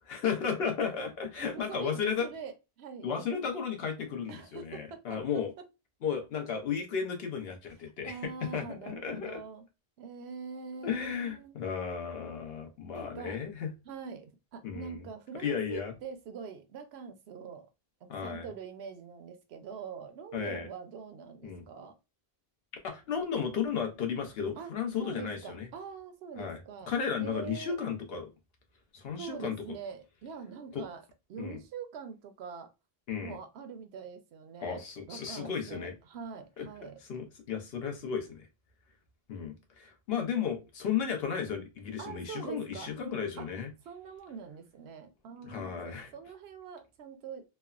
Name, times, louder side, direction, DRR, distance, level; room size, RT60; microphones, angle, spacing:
voice 1, 0.1-2.3 3.0-5.5 6.0-9.4 10.8-13.7 14.6-15.1 15.4-16.0 18.1-18.4 20.3-20.7 21.4-21.7 22.8-25.7 26.4-26.6 26.9-28.3 28.9-29.6 30.7-30.8 31.4-31.6 33.1-33.4 34.6-35.9 36.6-38.5 39.3-43.7 45.4-46.1, left 7 dB, 70° left, 0.9 m, -34 dB
voice 2, 1.4-3.4 4.3-5.2 5.6-5.7 8.0-9.6 10.0-11.5 12.9-13.4 13.8-17.7 18.0-22.0 24.6-24.7 25.0-27.7 29.2-31.0 31.3-32.7 33.2-37.0 42.0-42.9 43.4-43.5 43.9-47.4, right 6 dB, 80° right, 0.8 m, -44 dB
3.2 x 2.1 x 2.3 m
omnidirectional pair, 1.1 m